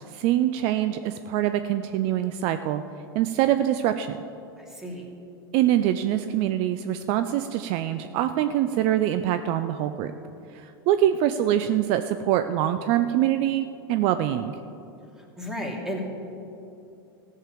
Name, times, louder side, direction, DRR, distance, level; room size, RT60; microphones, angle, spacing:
voice 1, 0.1-2.8 3.1-4.2 5.5-10.1 10.5-14.6, right 12 dB, 50° right, 10 dB, 0.5 m, -24 dB
voice 2, 4.6-5.0 15.4-16.0, equal, 5° right, -1 dB, 2.6 m, -33 dB
14.5 x 6.6 x 7.5 m, 2.8 s
hypercardioid pair, 105°, 12 cm